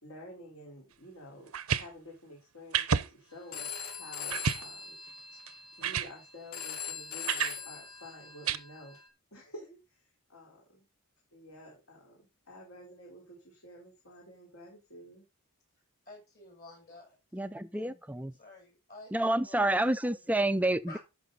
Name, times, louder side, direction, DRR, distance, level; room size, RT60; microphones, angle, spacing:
voice 1, 0.0-5.0 5.3-5.4 5.8-9.0 9.3-10.8 11.3-15.2, left 1 dB, 65° left, 4.1 m, -50 dB
sound 1, 1.5-1.9 2.7-3.1 3.6-3.7 4.3-4.7 5.5-5.6 5.8-6.1 7.3-7.6 8.5-8.6, right 7 dB, 70° right, 0.8 m, -29 dB
Telephone, 3.5-9.1, left 7 dB, 80° left, 2.3 m, -42 dB
voice 2, 16.1-17.2 17.7-17.9 18.4-20.1 20.9-21.0, left 2 dB, 45° left, 7.1 m, -51 dB
voice 3, 17.3-18.3 19.1-21.0, right 1 dB, 5° right, 0.5 m, -29 dB
13.5 x 6.1 x 3.9 m
head